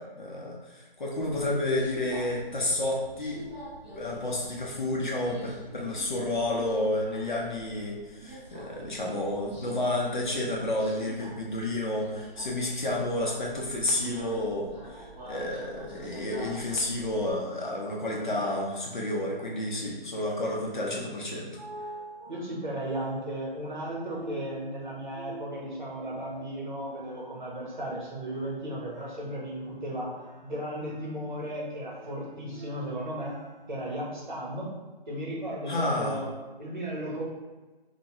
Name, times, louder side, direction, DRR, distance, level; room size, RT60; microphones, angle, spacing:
voice 1, 0.0-3.4 4.0-21.5 35.7-36.2, left 1 dB, 50° left, -2 dB, 0.7 m, -30 dB
Subway metro underground, 1.2-17.3, right 1 dB, 10° right, 1.3 m, -46 dB
sound 1, 21.5-34.0, right 2 dB, 65° right, 0.5 m, -48 dB
voice 2, 22.3-30.1 30.4-33.3 33.7-34.7 35.1-36.3 36.6-37.3, right 1 dB, 50° right, -4 dB, 1.0 m, -35 dB
3.3 x 2.2 x 2.8 m, 1.2 s
figure-of-eight pair, 170°, 30 cm